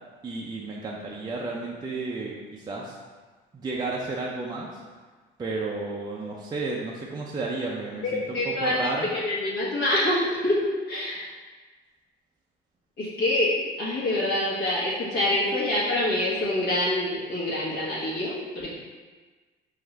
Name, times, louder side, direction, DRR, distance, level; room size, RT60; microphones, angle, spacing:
voice 1, 0.2-3.0 3.5-4.8 5.4-9.1, right 3 dB, 20° right, -3 dB, 0.5 m, -32 dB
voice 2, 8.0-10.6 10.9-11.3 13.0-13.5 13.8-18.8, left 1 dB, 60° left, -8 dB, 1.5 m, -26 dB
5.7 x 2.6 x 3.3 m, 1.4 s
cardioid pair, 120°, 20 cm